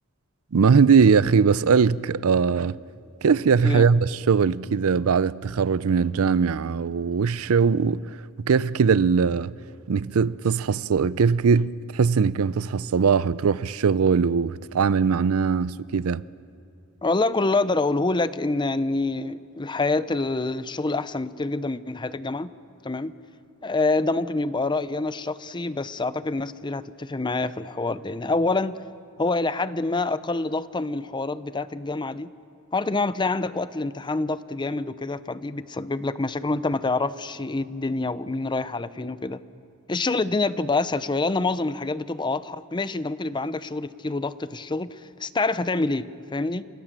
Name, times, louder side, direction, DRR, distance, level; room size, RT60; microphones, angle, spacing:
voice 1, 0.5-2.8 3.2-8.2 8.5-9.5 9.9-16.2, right 5 dB, 75° right, 0.5 m, -21 dB
voice 2, 17.0-22.5 22.8-23.1 23.6-28.8 29.2-32.3 32.7-39.4 39.9-46.6, left 3 dB, 20° left, 0.6 m, -26 dB
28.5 x 20.0 x 7.4 m
head